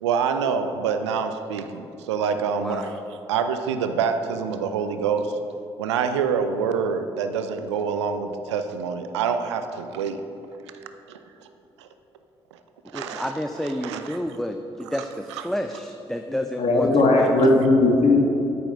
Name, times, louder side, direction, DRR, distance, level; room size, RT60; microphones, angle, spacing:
voice 1, 0.0-2.9 3.3-5.4 5.8-10.2 11.1-11.2 11.8-11.9 12.9-13.3 13.8-14.2, right 6 dB, 85° right, 8 dB, 0.6 m, -26 dB
voice 2, 2.6-3.0 12.9-17.3, equal, ahead, 5 dB, 0.6 m, -30 dB
voice 3, 16.6-18.2, left 2 dB, 50° left, 0 dB, 2.1 m, -17 dB
9.8 x 8.8 x 5.1 m, 2.8 s
figure-of-eight pair, 40°, 14 cm